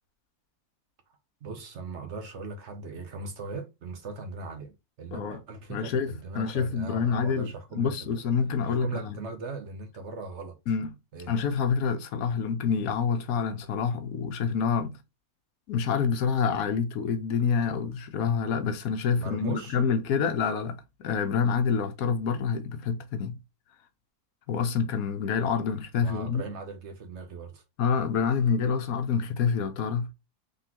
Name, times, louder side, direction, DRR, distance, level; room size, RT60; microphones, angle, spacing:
voice 1, 1.4-8.2 8.6-10.6 11.1-11.3 19.2-19.8 25.9-27.6, right 3 dB, 55° right, 0.9 m, -39 dB
voice 2, 5.7-7.5 7.8-9.1 10.7-10.9 11.3-14.9 15.7-23.4 24.5-26.4 27.8-30.1, left 6 dB, 75° left, 1.1 m, -27 dB
3.9 x 3.7 x 2.8 m
omnidirectional pair, 1.6 m